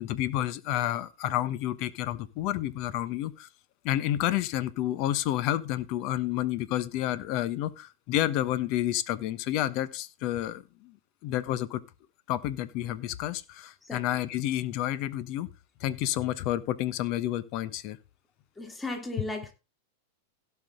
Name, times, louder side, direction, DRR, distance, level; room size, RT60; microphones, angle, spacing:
voice 1, 0.0-3.5 3.8-11.0 11.2-11.8 12.3-15.5 15.8-18.0, left 13 dB, 50° left, 1.2 m, -30 dB
voice 2, 18.6-19.5, left 2 dB, 10° left, 3.2 m, -35 dB
17.0 x 5.9 x 3.8 m
hypercardioid pair, 105°, 0 cm